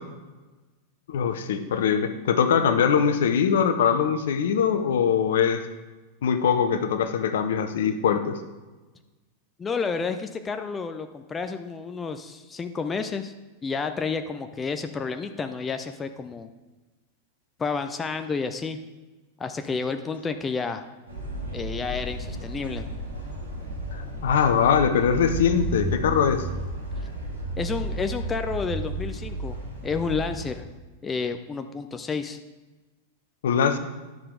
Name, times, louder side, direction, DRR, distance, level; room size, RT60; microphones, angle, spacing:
voice 1, 1.1-5.6 6.2-8.4 24.2-26.4 33.4-33.8, left 7 dB, 60° left, 10 dB, 0.7 m, -22 dB
voice 2, 9.6-13.3 13.6-16.5 17.6-18.8 19.4-20.8 21.5-22.8 27.6-29.6 29.8-30.7 31.0-32.4, left 5 dB, 20° left, 8 dB, 0.5 m, -30 dB
sound 1, 21.1-30.5, right 1 dB, 80° right, 2.2 m, -33 dB
10.5 x 6.6 x 3.7 m, 1.2 s
figure-of-eight pair, 90°, 0 cm